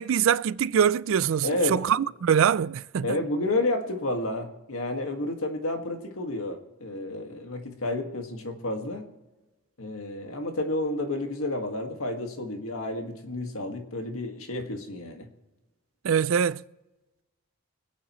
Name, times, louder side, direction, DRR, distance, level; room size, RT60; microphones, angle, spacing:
voice 1, 0.0-3.2 16.0-16.6, right 8 dB, 65° right, 0.4 m, -23 dB
voice 2, 1.4-1.8 3.0-9.0 9.8-15.3, left 2 dB, 75° left, 1.9 m, -30 dB
25.5 x 8.9 x 3.1 m
head